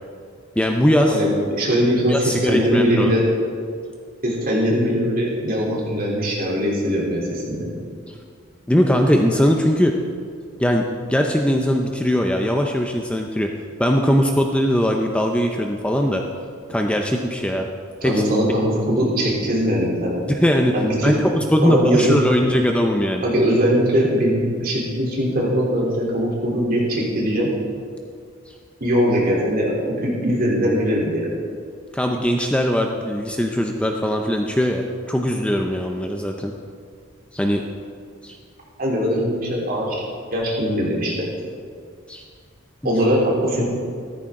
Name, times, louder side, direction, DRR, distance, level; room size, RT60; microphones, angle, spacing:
voice 1, 0.6-1.2 2.1-3.1 8.1-8.2 8.7-9.9 10.6-13.5 13.8-16.2 16.7-17.7 18.0-18.2 20.3-20.7 21.0-23.2 28.5-28.6 31.9-36.5 37.3-37.6 38.2-38.4 42.1-42.2 42.8-42.9, equal, 5° left, 2 dB, 0.6 m, -20 dB
voice 2, 1.6-3.2 4.2-7.7 18.0-20.2 20.7-21.2 21.6-22.2 23.2-27.5 28.8-31.3 38.8-40.0 40.3-41.1 42.8-43.7, equal, 45° right, -4 dB, 3.4 m, -21 dB
15.0 x 13.5 x 3.8 m, 2.2 s
head